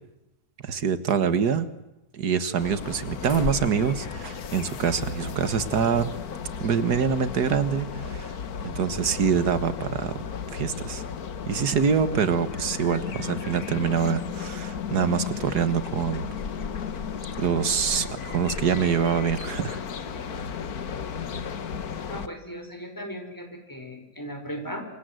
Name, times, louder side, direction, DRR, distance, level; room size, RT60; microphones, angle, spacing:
voice 1, 0.6-1.7 2.1-6.1 6.6-8.4 8.6-10.2 10.5-11.0 11.5-16.3 17.4-19.8, right 7 dB, 80° right, 12 dB, 2.0 m, -25 dB
sound 1, 2.6-22.3, left 6 dB, 70° left, 1.8 m, -34 dB
voice 2, 22.1-24.8, equal, 10° left, 4 dB, 6.0 m, -37 dB
28.0 x 24.5 x 7.9 m, 0.93 s
omnidirectional pair, 1.7 m